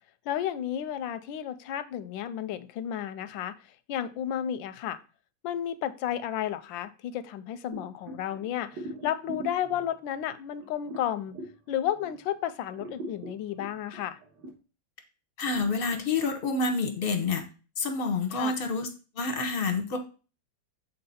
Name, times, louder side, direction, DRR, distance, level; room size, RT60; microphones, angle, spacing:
voice 1, 0.3-3.5 3.9-5.0 5.4-11.3 11.7-14.2 18.3-18.5, left 10 dB, 90° left, 13 dB, 1.3 m, -32 dB
sound 1, 7.7-12.3 12.7-14.5, right 1 dB, 65° right, 2.1 m, -42 dB
voice 2, 15.4-17.4 17.8-18.9 19.1-20.0, left 4 dB, 45° left, 5 dB, 0.8 m, -28 dB
6.6 x 4.1 x 4.1 m, 0.34 s
omnidirectional pair, 2.0 m